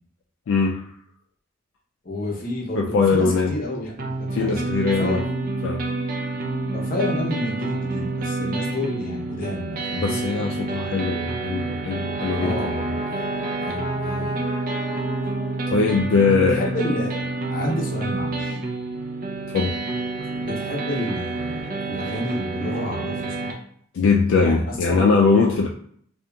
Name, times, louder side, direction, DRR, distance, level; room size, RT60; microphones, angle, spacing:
voice 1, 0.5-0.9 2.7-3.5 4.3-5.2 5.6-5.9 9.9-12.8 15.7-16.7 19.5-19.8 23.9-25.7, left 4 dB, 70° left, 0 dB, 0.3 m, -21 dB
voice 2, 2.0-4.6 5.0-5.2 6.7-10.2 12.4-13.0 13.6-14.4 16.5-18.6 20.4-23.5 24.4-25.1, left 1 dB, 45° left, -1 dB, 0.7 m, -30 dB
sound 1, 4.0-23.5, right 2 dB, 45° right, 0.4 m, -28 dB
Brass instrument, 11.7-16.1, right 1 dB, 75° right, 1.0 m, -33 dB
2.8 x 2.4 x 2.2 m, 0.64 s
head